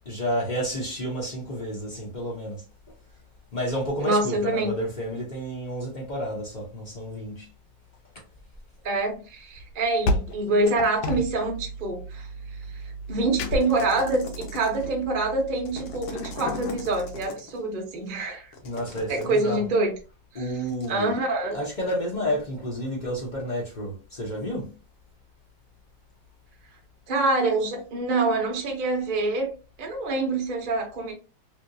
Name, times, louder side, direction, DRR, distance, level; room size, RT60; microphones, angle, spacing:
voice 1, 0.1-2.6 3.5-7.5 18.6-19.6 20.3-21.1 21.5-24.7, equal, 55° left, 0.5 m, -30 dB
voice 2, 4.0-4.7 8.8-12.3 13.1-18.5 19.1-19.9 20.9-21.6 27.1-29.5 29.8-31.1, right 2 dB, 60° right, 0.5 m, -25 dB
sound 1, 9.6-17.3, left 1 dB, 85° left, 1.4 m, -33 dB
sound 2, 13.6-14.9 15.5-17.6 18.5-19.4 20.7-20.9, left 4 dB, 70° left, 1.0 m, -42 dB
3.3 x 2.7 x 2.6 m
omnidirectional pair, 2.2 m